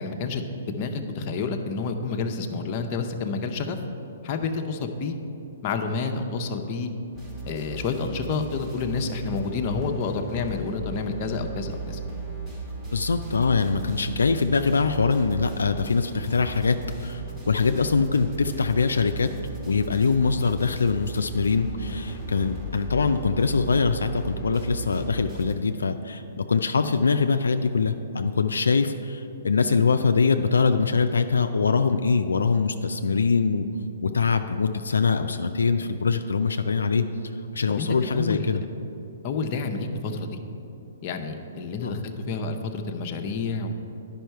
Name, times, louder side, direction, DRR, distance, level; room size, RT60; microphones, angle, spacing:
voice 1, 0.0-3.8 4.2-5.1 5.6-6.9 7.5-12.0 37.7-38.6 39.2-40.4 41.0-43.8, left 4 dB, 40° left, 4 dB, 0.7 m, -29 dB
sound 1, 7.1-25.5, right 3 dB, 20° right, 1.6 m, -37 dB
voice 2, 12.9-19.3 19.7-33.7 34.0-37.0 37.5-38.6 41.8-41.9, left 4 dB, 90° left, 7 dB, 0.3 m, -23 dB
10.0 x 5.5 x 4.6 m, 2.9 s
hypercardioid pair, 135°, 0 cm